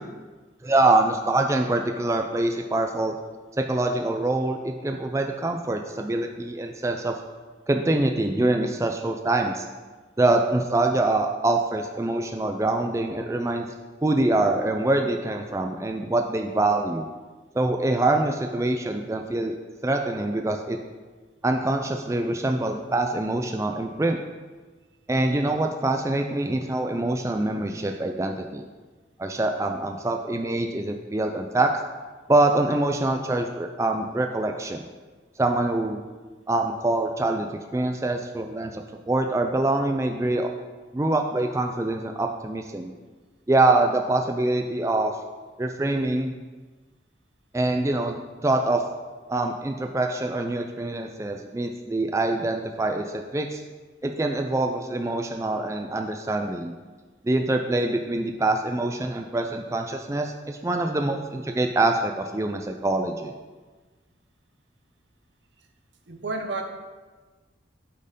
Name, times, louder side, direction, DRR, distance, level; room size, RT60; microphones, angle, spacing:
voice 1, 0.6-3.1 3.6-7.1 7.7-9.7 10.2-13.7 14.0-17.1 17.5-19.6 19.8-20.8 21.4-24.2 25.1-28.7 29.2-31.7 32.3-34.8 35.4-36.0 36.5-40.5 40.9-42.9 43.5-45.1 45.6-46.3 47.5-48.2 48.4-48.8 49.3-53.6 54.0-56.7 57.2-63.3, right 2 dB, 15° right, 4 dB, 0.3 m, -24 dB
voice 2, 66.1-66.6, right 3 dB, 75° right, 4 dB, 0.9 m, -31 dB
8.5 x 4.4 x 5.2 m, 1.3 s
head